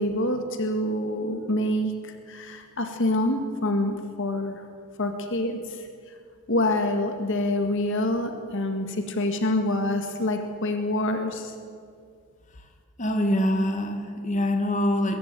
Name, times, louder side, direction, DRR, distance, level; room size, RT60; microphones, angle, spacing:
voice 1, 0.0-4.6 5.0-5.9 6.5-11.5, left 1 dB, 60° left, 5 dB, 1.8 m, -26 dB
voice 2, 13.0-15.2, left 1 dB, 35° left, 5 dB, 2.0 m, -24 dB
22.5 x 15.0 x 9.2 m, 2.1 s
head